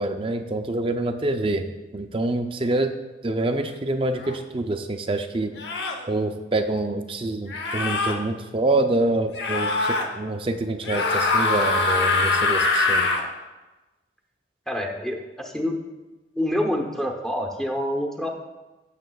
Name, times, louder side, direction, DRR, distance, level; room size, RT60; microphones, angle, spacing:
voice 1, 0.0-1.7 1.9-2.9 3.2-5.5 6.1-13.1, right 2 dB, 30° right, 6 dB, 0.4 m, -26 dB
sound 1, 4.2-4.4 5.6-6.0 7.5-8.1 9.3-10.1 10.8-13.2, left 3 dB, 70° left, 0.9 m, -23 dB
voice 2, 14.7-15.8 16.3-18.3, left 1 dB, ahead, 1 dB, 0.9 m, -27 dB
15.5 x 6.6 x 2.3 m, 1.1 s
head